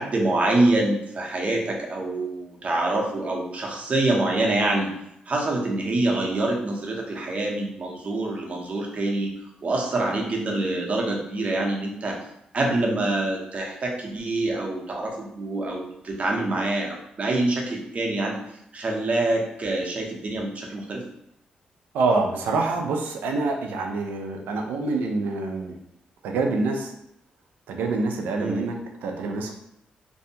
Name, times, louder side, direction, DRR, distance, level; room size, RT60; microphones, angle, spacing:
voice 1, 0.0-4.9 5.3-9.3 9.6-12.2 12.5-18.4 18.7-21.0 28.4-28.7, right 2 dB, 50° right, 0 dB, 0.7 m, -25 dB
voice 2, 21.9-25.8 26.2-26.9 27.7-28.8 29.0-29.6, right 3 dB, 90° right, 3 dB, 0.4 m, -26 dB
2.6 x 2.2 x 2.7 m, 0.78 s
cardioid pair, 65°, 3 cm